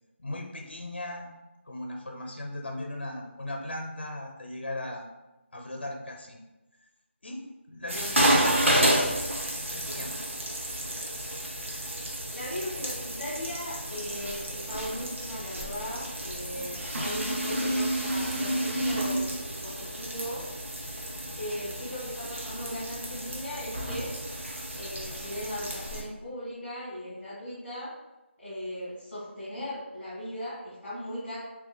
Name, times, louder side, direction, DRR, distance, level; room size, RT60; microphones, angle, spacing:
voice 1, 0.2-1.3 1.6-5.1 5.5-6.4 7.2-8.7 9.7-10.3, left 1 dB, 55° left, 2 dB, 0.6 m, -38 dB
sound 1, 7.9-26.0, right 1 dB, 75° right, 0.8 m, -30 dB
voice 2, 8.0-8.3 12.3-19.3 19.6-20.5 21.3-24.1 24.7-27.9 28.4-31.4, equal, 5° right, -23 dB, 0.4 m, -38 dB
2.9 x 2.2 x 3.8 m, 1.0 s
figure-of-eight pair, 180°, 7 cm